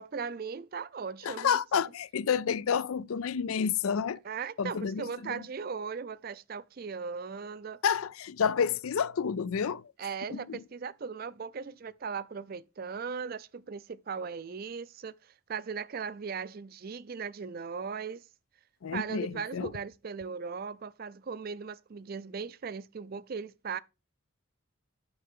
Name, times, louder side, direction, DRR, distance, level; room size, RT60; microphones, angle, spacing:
voice 1, 0.0-1.6 4.2-7.8 10.0-18.3 18.9-23.8, right 5 dB, 45° right, 0.4 m, -38 dB
voice 2, 1.2-4.2 4.6-5.4 7.8-9.8 10.3-10.6 18.8-19.7, left 7 dB, 90° left, 0.4 m, -30 dB
9.6 x 6.7 x 3.6 m
head